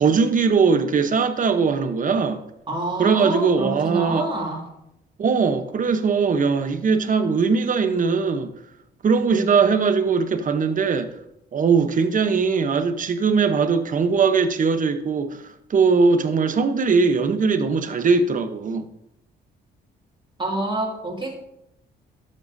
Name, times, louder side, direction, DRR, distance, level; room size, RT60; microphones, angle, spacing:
voice 1, 0.0-2.4 3.0-4.3 5.2-8.5 9.0-11.1 11.5-18.9, right 5 dB, 40° right, 0.9 m, -20 dB
voice 2, 2.7-4.7 20.4-21.4, right 1 dB, 25° right, 2.3 m, -27 dB
12.5 x 7.5 x 2.7 m
cardioid pair, 90°, 20 cm